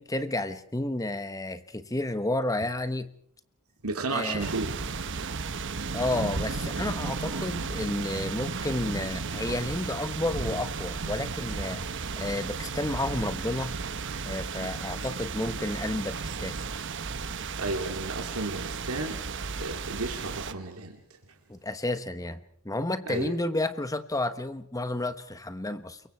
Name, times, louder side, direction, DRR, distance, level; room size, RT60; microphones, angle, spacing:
voice 1, 0.0-3.1 4.1-4.5 5.9-11.8 12.2-13.7 14.3-16.6 21.5-22.4 22.6-26.0, left 1 dB, 15° left, 11 dB, 1.2 m, -31 dB
voice 2, 3.8-4.7 14.6-14.7 17.6-19.2 19.6-21.0 23.1-23.3, right 2 dB, 85° right, 2 dB, 2.6 m, -33 dB
sound 1, 4.4-20.5, right 4 dB, 55° right, 1.0 m, -34 dB
29.0 x 23.0 x 4.5 m, 0.63 s
head